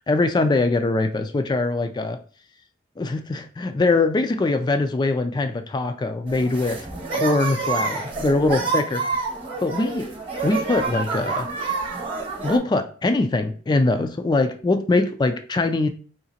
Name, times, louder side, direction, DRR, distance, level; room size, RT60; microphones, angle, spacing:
voice 1, 0.1-2.2 3.0-6.8 7.1-9.0 9.6-10.1 10.4-11.5 12.4-15.9, left 2 dB, 25° left, 8 dB, 0.3 m, -22 dB
sound 1, 6.3-12.6, right 4 dB, 30° right, 0.9 m, -28 dB
3.8 x 2.9 x 2.8 m, 0.41 s
head